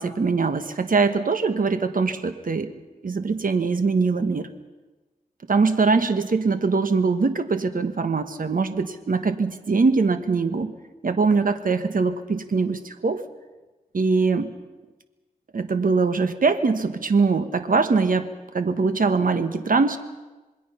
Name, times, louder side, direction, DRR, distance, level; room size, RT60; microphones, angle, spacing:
voice 1, 0.0-2.7 3.0-4.5 5.5-10.7 11.0-13.2 13.9-14.5 15.5-20.0, right 4 dB, 65° right, 9 dB, 1.3 m, -22 dB
27.0 x 21.0 x 5.7 m, 1.2 s
wide cardioid pair, 70°, 16 cm